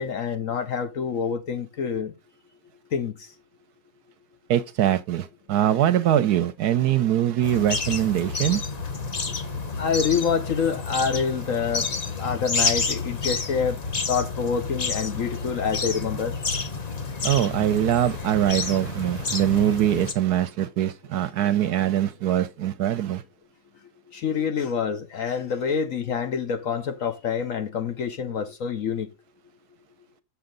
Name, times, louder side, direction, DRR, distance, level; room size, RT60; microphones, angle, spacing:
voice 1, 0.0-2.1 2.9-3.3 9.8-13.8 14.1-16.3 24.1-29.1, left 6 dB, 60° left, 1.0 m, -27 dB
voice 2, 4.5-8.6 17.2-23.2, right 11 dB, 70° right, 1.1 m, -23 dB
sound 1, 7.4-20.1, left 4 dB, 35° left, 0.6 m, -29 dB
7.0 x 7.0 x 3.7 m
omnidirectional pair, 1.9 m